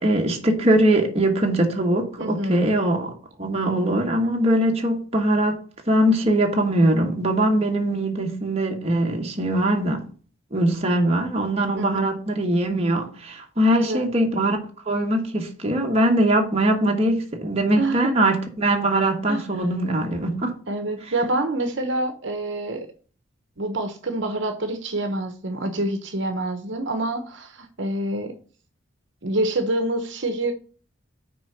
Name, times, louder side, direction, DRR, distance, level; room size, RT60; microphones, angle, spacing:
voice 1, 0.0-3.1 3.4-10.0 10.5-14.6 14.9-20.5, right 1 dB, 30° right, 1.3 m, -21 dB
voice 2, 2.2-2.7 11.7-12.2 13.7-14.0 17.8-18.1 19.3-19.6 20.7-22.9 23.6-28.3 29.2-30.5, right 2 dB, 60° right, 1.0 m, -27 dB
6.2 x 4.7 x 6.6 m
head